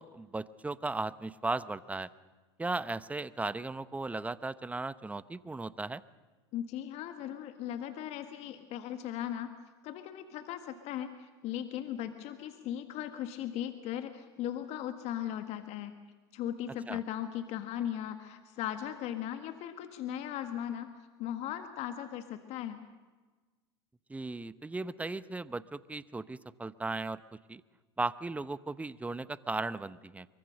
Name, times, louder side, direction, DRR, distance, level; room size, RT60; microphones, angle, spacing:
voice 1, 0.0-2.1 2.6-6.0 16.9-17.0 24.1-27.2 27.5-27.6 28.0-30.3, right 3 dB, 10° right, 16 dB, 0.8 m, -36 dB
voice 2, 6.5-9.5 9.8-15.9 16.3-20.9 21.2-22.8, left 11 dB, 50° left, 8 dB, 1.6 m, -38 dB
24.0 x 23.5 x 6.6 m, 1.3 s
hypercardioid pair, 95°, 14 cm